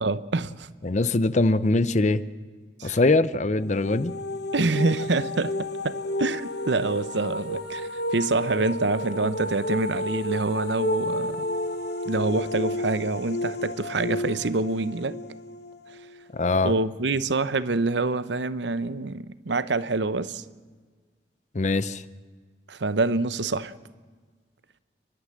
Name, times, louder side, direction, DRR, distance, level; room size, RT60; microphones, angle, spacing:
voice 1, 0.0-0.7 2.8-3.0 4.5-11.4 12.0-15.2 16.6-20.4 22.7-23.7, right 3 dB, 75° right, 0.8 m, -26 dB
voice 2, 0.8-2.2 2.8-4.1 16.3-16.7 21.5-22.0, left 2 dB, 40° left, 0.6 m, -22 dB
sound 1, 3.6-16.4, left 1 dB, 60° left, 1.3 m, -31 dB
29.5 x 11.5 x 7.6 m
head